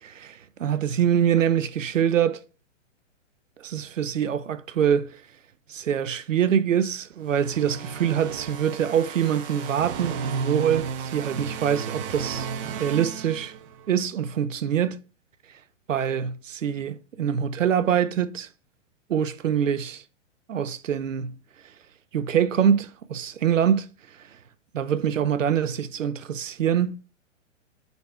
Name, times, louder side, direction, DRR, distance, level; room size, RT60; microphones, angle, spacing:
voice 1, 0.0-2.4 3.6-5.2 5.7-12.5 12.8-13.5 13.9-15.0 15.9-18.5 19.1-20.0 20.5-21.4 22.1-23.9 24.7-27.0, right 8 dB, 85° right, 0.7 m, -24 dB
sound 1, 7.3-13.9, right 6 dB, 45° right, 1.0 m, -34 dB
8.9 x 4.1 x 3.5 m
hypercardioid pair, 120°, 37 cm